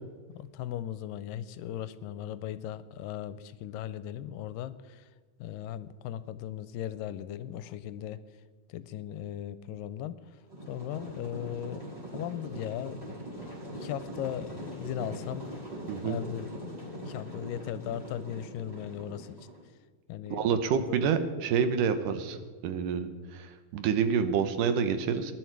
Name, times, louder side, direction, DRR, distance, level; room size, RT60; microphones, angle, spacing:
voice 1, 0.3-5.1 5.4-8.2 8.7-10.2 10.7-13.1 13.7-15.5 16.0-19.4 20.1-21.1, left 11 dB, 80° left, 14 dB, 2.2 m, -38 dB
sound 1, 10.5-19.6, right 1 dB, 10° right, 5.4 m, -42 dB
voice 2, 20.3-22.4 22.6-25.3, right 7 dB, 75° right, 10 dB, 2.4 m, -28 dB
19.5 x 11.0 x 4.7 m, 1.4 s
omnidirectional pair, 4.0 m